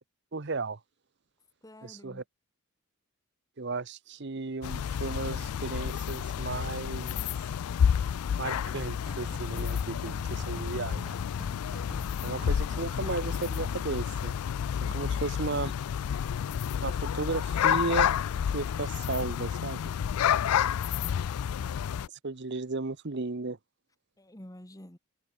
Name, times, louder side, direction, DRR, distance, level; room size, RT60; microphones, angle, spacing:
voice 1, 0.3-0.8 1.8-2.2 3.6-7.2 8.4-11.1 12.2-14.3 14.9-15.7 16.8-18.1 18.5-19.9 22.2-23.6, right 3 dB, 50° right, 0.9 m, -34 dB
voice 2, 1.6-2.2 24.2-25.0, left 1 dB, 15° left, 2.0 m, -50 dB
sound 1, 4.6-22.1, left 8 dB, 85° left, 0.4 m, -30 dB
sound 2, 8.7-14.1, equal, 5° right, 3.2 m, -46 dB
head